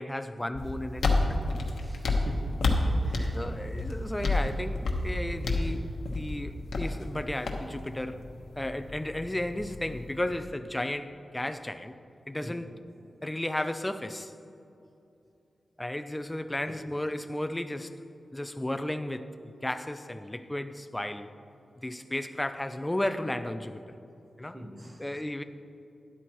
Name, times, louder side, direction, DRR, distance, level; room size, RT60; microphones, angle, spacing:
voice 1, 0.0-1.4 3.3-8.2 8.6-11.9 12.3-12.7 13.2-14.3 15.8-17.9 18.3-21.3 21.8-23.8 24.4-24.6 25.0-25.4, left 1 dB, 10° left, 10 dB, 0.4 m, -34 dB
sound 1, 0.5-10.4, left 2 dB, 90° left, 1.2 m, -30 dB
voice 2, 1.8-2.5 3.0-3.4 12.4-12.6 16.7-16.8 24.5-25.2, right 1 dB, 20° right, 3 dB, 1.0 m, -44 dB
12.5 x 11.0 x 3.1 m, 2.8 s
wide cardioid pair, 145°, 0 cm